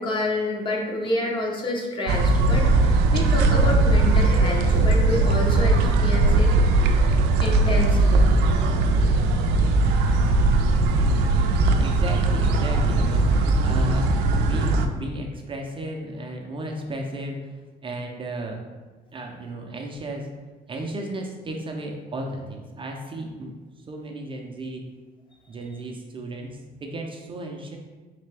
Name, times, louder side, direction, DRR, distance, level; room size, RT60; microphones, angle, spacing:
voice 1, 0.0-6.5 7.4-8.3, left 1 dB, 30° left, -1 dB, 0.8 m, -28 dB
sound 1, 2.1-14.9, right 2 dB, 85° right, 0.4 m, -19 dB
voice 2, 11.8-17.5 17.8-18.6 19.1-20.3 20.7-23.5 23.9-24.8 25.5-27.8, right 1 dB, 30° right, 1 dB, 0.5 m, -34 dB
3.6 x 3.3 x 3.3 m, 1.3 s
cardioid pair, 110°, 17 cm